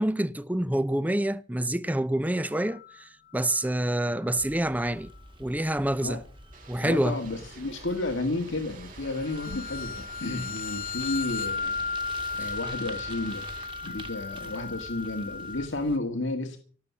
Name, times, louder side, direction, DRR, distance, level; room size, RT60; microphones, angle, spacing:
voice 1, 0.0-5.1 5.4-6.2 6.7-7.2 12.4-12.5, right 1 dB, 10° right, 0.6 m, -27 dB
sound 1, 2.5-3.0 3.4-3.7 9.1-15.7, left 5 dB, 45° left, 0.8 m, -35 dB
Bicycle, 4.4-16.0, right 2 dB, 25° right, 2.0 m, -48 dB
sound 2, 6.5-13.7, right 3 dB, 45° right, 3.4 m, -48 dB
voice 2, 6.8-11.8 12.4-13.5 13.8-16.6, left 2 dB, 90° left, 1.9 m, -32 dB
17.5 x 7.1 x 8.3 m
head